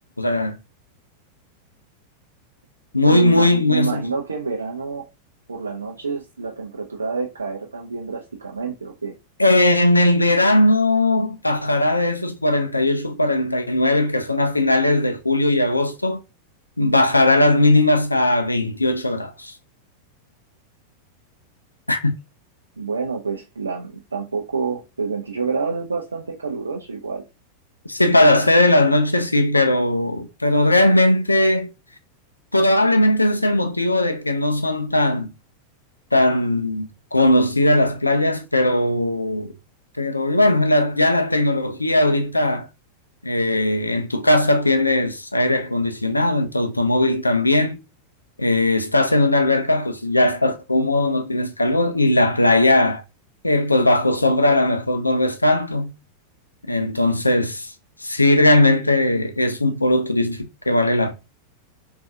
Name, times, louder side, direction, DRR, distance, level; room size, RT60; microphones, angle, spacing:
voice 1, 0.2-0.6 2.9-4.0 9.4-16.2 16.8-19.6 21.9-22.2 27.9-31.7 32.5-35.3 36.1-39.5 40.0-42.7 43.2-47.8 48.4-53.0 53.4-55.9 56.7-57.7 58.0-61.1, left 1 dB, 85° left, 0.3 m, -18 dB
voice 2, 3.1-5.0 5.5-9.1 22.8-27.2, right 4 dB, 75° right, 0.4 m, -28 dB
3.6 x 2.4 x 2.5 m
figure-of-eight pair, 90°, 0 cm